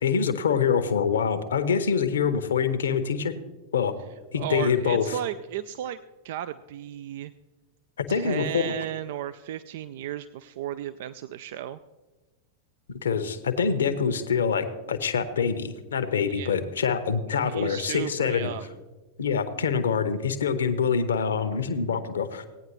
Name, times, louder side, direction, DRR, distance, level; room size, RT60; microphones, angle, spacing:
voice 1, 0.0-3.3 3.7-3.9 4.3-5.2 8.0-8.7 13.0-18.5 19.2-22.5, left 6 dB, 65° left, 10 dB, 0.8 m, -25 dB
voice 2, 4.3-7.3 8.1-11.8 16.3-16.5 17.3-18.7, right 11 dB, 55° right, 14 dB, 0.3 m, -34 dB
17.5 x 9.4 x 3.1 m, 1.1 s
figure-of-eight pair, 90°, 0 cm